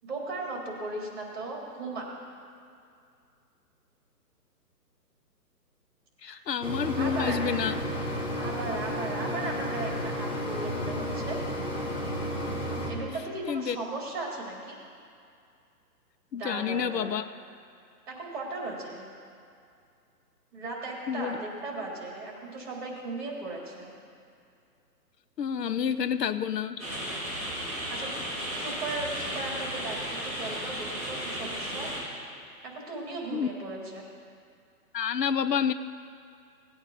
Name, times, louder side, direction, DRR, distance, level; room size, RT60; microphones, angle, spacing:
voice 1, 0.0-2.1 6.2-6.4 6.9-7.4 8.3-11.4 12.9-14.8 16.3-17.1 18.1-19.0 20.5-23.9 27.9-28.1 28.5-31.9 32.6-34.1, right 2 dB, 40° right, -2 dB, 3.5 m, -37 dB
voice 2, 6.2-7.8 13.4-13.8 16.3-17.3 21.1-21.4 25.4-26.8 33.3-33.5 34.9-35.7, left 7 dB, 80° left, 13 dB, 0.8 m, -29 dB
Mechanisms, 6.6-12.9, equal, 30° left, 2.1 m, -32 dB
sound 1, 26.8-32.0, equal, 5° left, 3.8 m, -34 dB
18.5 x 8.9 x 4.1 m, 2.4 s
hypercardioid pair, 180°, 48 cm